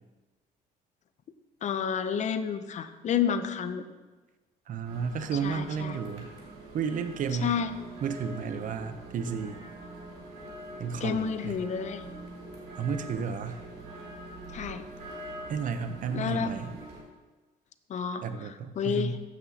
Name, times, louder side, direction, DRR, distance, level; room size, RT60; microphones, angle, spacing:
voice 1, 1.6-3.8 5.4-6.0 7.4-7.7 11.0-12.1 14.5-14.8 16.1-16.5 17.9-19.2, left 7 dB, 45° left, 10 dB, 0.6 m, -30 dB
voice 2, 4.7-6.3 6.7-7.5 8.0-9.6 10.8-11.6 12.8-13.6 15.5-16.8 18.2-19.2, right 6 dB, 50° right, 9 dB, 0.7 m, -32 dB
sound 1, 4.8-17.0, right 1 dB, 70° right, 2.4 m, -44 dB
14.5 x 6.1 x 2.9 m, 1.2 s
cardioid pair, 110°, 17 cm